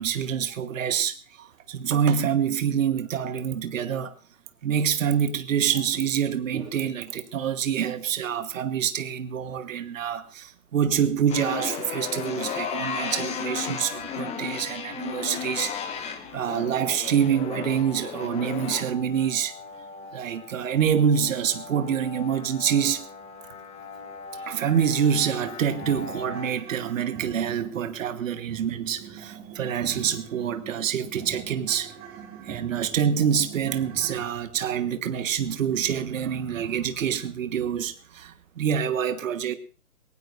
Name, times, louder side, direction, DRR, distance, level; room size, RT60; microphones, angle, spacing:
voice 1, 0.0-4.1 4.6-19.5 20.1-23.1 24.4-31.9 32.4-39.5, right 8 dB, 55° right, 1.3 m, -26 dB
sound 1, 11.3-26.5, left 7 dB, 15° left, 1.3 m, -36 dB
sound 2, 24.2-24.3 24.7-24.8 25.2-34.2, right 7 dB, 20° right, 2.1 m, -43 dB
21.0 x 18.5 x 2.6 m
figure-of-eight pair, 135°, 46 cm